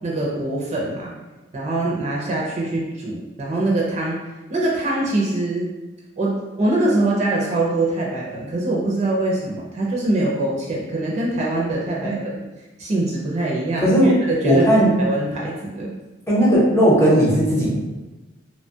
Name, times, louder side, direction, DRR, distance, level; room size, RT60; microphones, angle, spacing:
voice 1, 0.0-1.1 1.5-4.2 4.5-5.6 6.2-12.2 12.8-15.9, right 2 dB, 35° right, -4 dB, 0.4 m, -23 dB
voice 2, 13.8-14.2 14.4-14.9 16.3-17.7, equal, 15° left, -6 dB, 0.7 m, -16 dB
2.9 x 2.2 x 2.6 m, 1.1 s
head